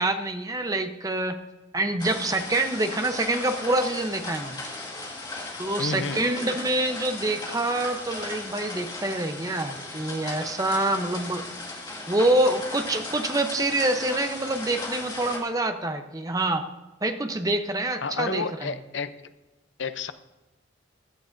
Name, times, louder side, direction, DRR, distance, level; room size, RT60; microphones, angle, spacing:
voice 1, 0.0-1.4 1.7-4.6 5.6-11.4 12.1-16.7 17.0-18.7, right 2 dB, 20° right, 7 dB, 0.7 m, -26 dB
sound 1, 2.0-15.4, left 2 dB, 20° left, 1.9 m, -37 dB
voice 2, 5.8-6.2 18.0-19.2 19.8-20.1, left 4 dB, 70° left, 12 dB, 0.6 m, -30 dB
15.5 x 12.0 x 2.6 m, 1.1 s
head